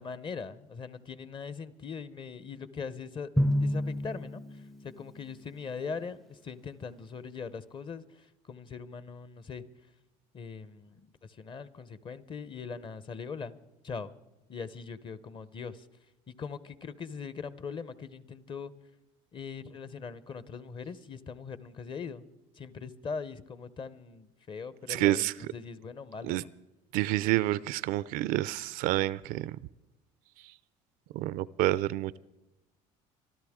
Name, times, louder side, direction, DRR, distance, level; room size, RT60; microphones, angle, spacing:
voice 1, 0.0-3.3 3.6-9.6 10.3-13.6 13.8-14.1 14.5-15.9 16.3-18.7 19.3-22.2 22.5-26.5, left 5 dB, 35° left, 16 dB, 0.8 m, -41 dB
Drum, 3.4-5.5, equal, ahead, 0.5 m, -30 dB
voice 2, 24.9-25.3 26.2-26.4 26.9-29.6 31.1-32.2, right 16 dB, 70° right, 19 dB, 0.4 m, -28 dB
24.5 x 13.0 x 3.6 m, 1.0 s
supercardioid pair, 105°, 15 cm